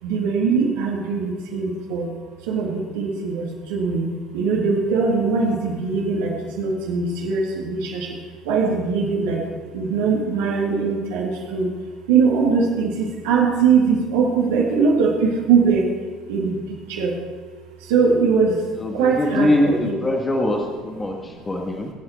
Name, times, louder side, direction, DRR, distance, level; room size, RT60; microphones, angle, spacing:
voice 1, 0.0-2.1 2.4-8.2 8.4-9.4 9.7-11.7 12.1-15.9 16.3-17.2 17.8-18.6 18.9-19.9 21.1-21.3 21.6-21.8, right 5 dB, 65° right, -2 dB, 2.4 m, -21 dB
voice 2, 18.8-21.9, left 1 dB, 20° left, 1 dB, 2.0 m, -22 dB
23.5 x 8.8 x 4.5 m, 1.5 s
figure-of-eight pair, 60°, 0 cm